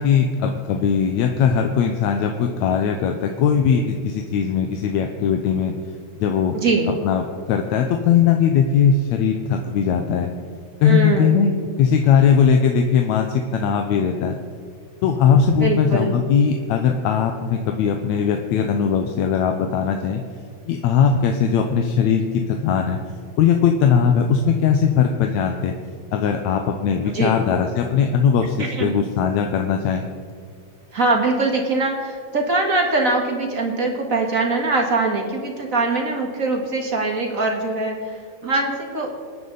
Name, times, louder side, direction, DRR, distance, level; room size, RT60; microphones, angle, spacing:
voice 1, 0.0-5.7 6.2-6.6 7.0-7.2 7.5-10.3 10.8-11.5 11.8-14.4 15.0-20.2 20.7-23.0 23.4-25.8 26.1-30.0, left 7 dB, 75° left, 4 dB, 2.1 m, -19 dB
voice 2, 6.5-6.9 10.8-11.5 15.5-16.2 27.1-27.4 28.6-29.0 30.9-39.1, right 3 dB, 35° right, 2 dB, 1.6 m, -22 dB
27.0 x 9.7 x 4.0 m, 2.2 s
omnidirectional pair, 3.4 m